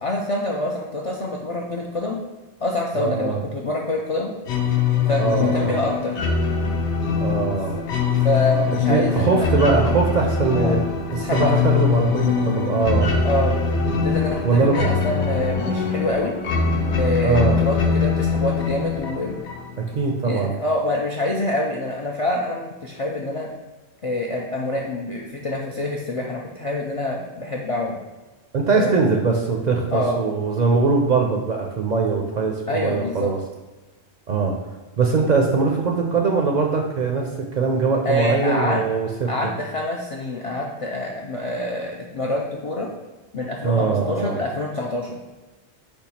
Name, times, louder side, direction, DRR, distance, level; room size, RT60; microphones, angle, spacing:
voice 1, 0.0-2.2 2.6-4.3 5.1-6.2 8.2-9.6 10.5-10.8 11.1-11.7 13.2-13.6 14.0-16.3 17.0-19.4 20.2-23.5 24.0-28.0 28.8-28.9 29.9-30.2 32.7-33.3 38.0-38.8 39.3-42.9 43.3-45.2, left 1 dB, 55° left, -1 dB, 0.3 m, -26 dB
voice 2, 2.9-3.4 5.2-5.8 7.2-7.8 8.9-10.8 11.1-13.1 14.4-14.8 17.2-17.6 19.9-20.6 28.5-33.4 34.3-34.6 35.0-37.3 37.6-39.5 43.6-44.4, right 4 dB, 55° right, 1 dB, 0.5 m, -21 dB
sound 1, 4.5-20.0, left 5 dB, 85° left, 0.9 m, -22 dB
5.3 x 2.3 x 4.1 m, 1.2 s
omnidirectional pair, 1.1 m